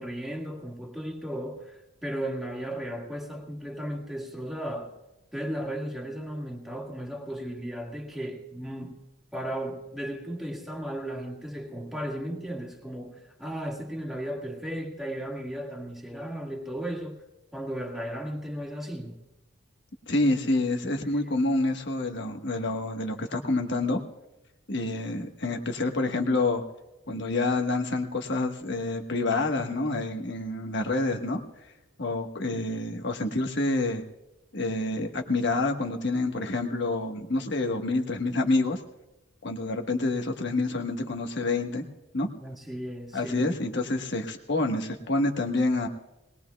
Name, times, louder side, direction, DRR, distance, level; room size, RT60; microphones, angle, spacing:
voice 1, 0.0-4.9 5.3-9.0 9.3-17.2 17.5-19.2 42.4-43.5, right 1 dB, ahead, 1.9 m, -35 dB
voice 2, 20.1-24.0 24.7-26.6 27.1-31.4 32.0-34.0 34.5-38.8 39.4-41.8 42.1-42.3 43.1-45.9, left 2 dB, 60° left, 1.4 m, -27 dB
21.0 x 20.0 x 2.3 m
head